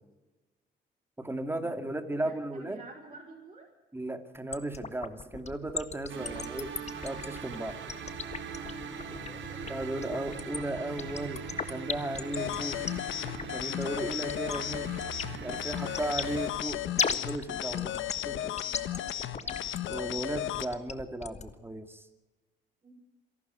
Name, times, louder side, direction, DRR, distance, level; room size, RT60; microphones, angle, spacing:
voice 1, 1.2-2.8 3.9-6.7 7.0-7.8 9.7-12.8 13.5-14.9 15.4-18.0 18.2-18.5 19.9-22.1, right 1 dB, 10° right, 8 dB, 2.6 m, -35 dB
voice 2, 2.1-3.7 6.1-6.4 8.8-9.6 18.6-19.7 22.8-22.9, right 3 dB, 25° right, -2 dB, 5.7 m, -51 dB
sound 1, 4.5-21.5, left 5 dB, 35° left, 1.6 m, -36 dB
sound 2, 6.1-16.5, right 5 dB, 75° right, 4.6 m, -41 dB
sound 3, 12.3-20.7, left 12 dB, 75° left, 1.2 m, -35 dB
26.5 x 12.0 x 9.4 m, 1.1 s
cardioid pair, 90°, 20 cm